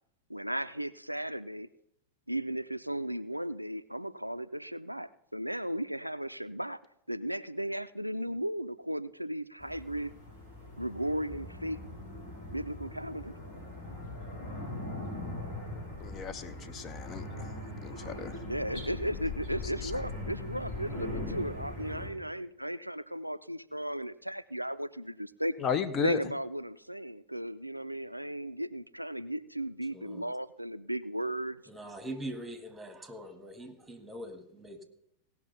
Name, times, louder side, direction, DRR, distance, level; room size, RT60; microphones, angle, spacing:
voice 1, 0.3-1.7 2.3-6.8 7.1-10.2 10.8-11.8 12.5-13.3 18.5-25.5 26.0-31.6, right 1 dB, 90° right, 13 dB, 0.3 m, -35 dB
sound 1, 9.6-22.1, left 2 dB, 55° left, 5.4 m, -40 dB
voice 2, 16.0-17.5 17.8-18.3 19.8-20.0 25.6-26.2, left 6 dB, 30° left, 11 dB, 0.6 m, -34 dB
voice 3, 29.9-30.3 31.7-34.8, right 1 dB, 10° right, 7 dB, 1.7 m, -43 dB
17.5 x 5.9 x 5.7 m, 0.78 s
figure-of-eight pair, 90°, 0 cm